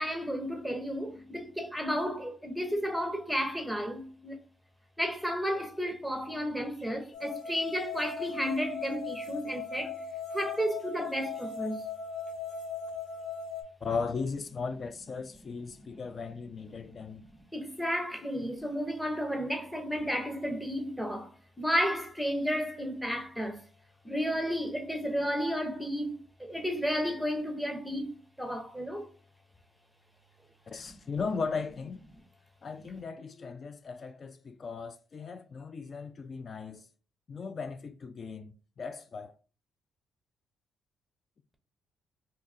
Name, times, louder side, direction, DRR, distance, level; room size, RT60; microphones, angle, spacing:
voice 1, 0.0-4.4 5.0-10.0 10.3-11.8 17.5-21.3 21.6-23.6 24.0-29.1, equal, ahead, 0.7 m, -32 dB
sound 1, 7.1-13.6, left 5 dB, 75° left, 1.1 m, -38 dB
voice 2, 13.8-17.2 30.7-32.0 32.6-36.9 37.3-39.3, left 5 dB, 45° left, 0.3 m, -37 dB
2.7 x 2.3 x 4.1 m
cardioid pair, 90°, 0 cm